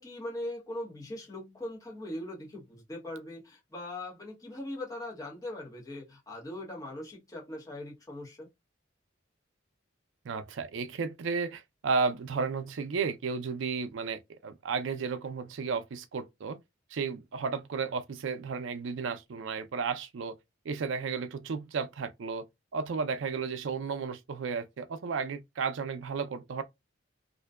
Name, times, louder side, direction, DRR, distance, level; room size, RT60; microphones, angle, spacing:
voice 1, 0.0-8.5, left 1 dB, 20° left, 0.8 m, -40 dB
voice 2, 10.2-16.6 16.9-20.4 20.6-22.4 22.7-26.6, right 5 dB, 75° right, 0.4 m, -33 dB
2.5 x 2.2 x 2.2 m
head